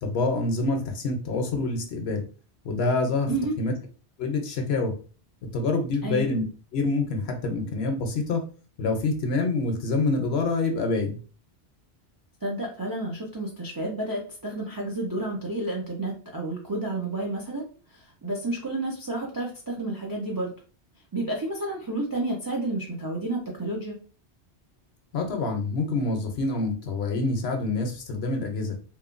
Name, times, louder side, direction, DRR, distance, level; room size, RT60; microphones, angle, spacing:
voice 1, 0.0-2.2 2.6-3.3 3.6-3.7 4.2-4.9 5.5-6.4 6.7-8.4 8.8-11.2 25.1-28.8, left 3 dB, 70° left, 5 dB, 0.9 m, -26 dB
voice 2, 6.0-6.3 12.4-20.5 21.1-24.0, right 2 dB, 35° right, -1 dB, 0.3 m, -31 dB
2.9 x 2.2 x 2.4 m, 0.37 s
omnidirectional pair, 1.1 m